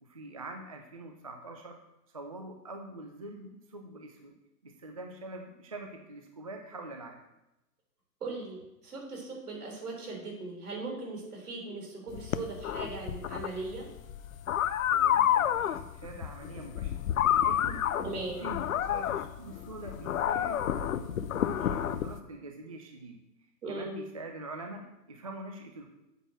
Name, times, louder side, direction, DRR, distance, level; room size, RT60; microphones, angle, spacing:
voice 1, 0.0-1.8 2.1-4.3 4.6-7.2 14.6-17.0 17.4-17.9 18.4-23.2 23.7-25.9, right 2 dB, 25° right, 3 dB, 0.3 m, -44 dB
voice 2, 8.2-13.9 18.0-18.4 23.6-24.0, right 3 dB, 65° right, 0 dB, 3.7 m, -39 dB
sound 1, 12.1-22.2, left 10 dB, 55° left, 0.6 m, -30 dB
7.8 x 6.0 x 6.3 m, 0.92 s
figure-of-eight pair, 120°, 50 cm